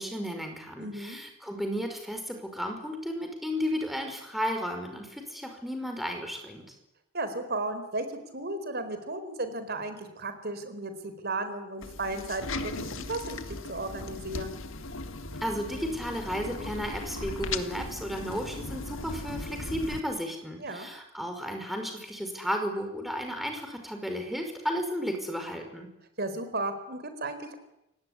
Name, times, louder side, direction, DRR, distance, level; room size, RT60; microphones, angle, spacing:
voice 1, 0.0-6.8 15.4-25.9, equal, ahead, 4 dB, 5.4 m, -33 dB
voice 2, 0.8-1.2 7.1-8.0 8.3-14.6 20.6-20.9 26.2-27.5, right 2 dB, 50° right, 10 dB, 4.3 m, -34 dB
sound 1, 11.8-20.0, left 2 dB, 70° left, 1.8 m, -37 dB
29.5 x 17.5 x 9.9 m, 0.87 s
head